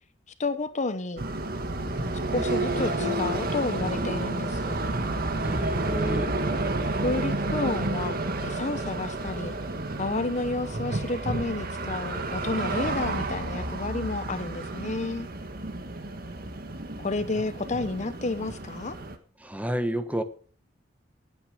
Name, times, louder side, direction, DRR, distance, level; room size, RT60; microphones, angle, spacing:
voice 1, 0.4-1.2 2.3-4.8 7.0-9.5 10.0-15.3 17.0-19.0, left 3 dB, 40° left, 0.8 m, -31 dB
sound 1, 1.2-19.2, right 2 dB, 50° right, 1.7 m, -30 dB
voice 2, 5.4-6.3 19.4-20.2, right 1 dB, 10° right, 1.2 m, -30 dB
18.5 x 9.0 x 5.0 m
head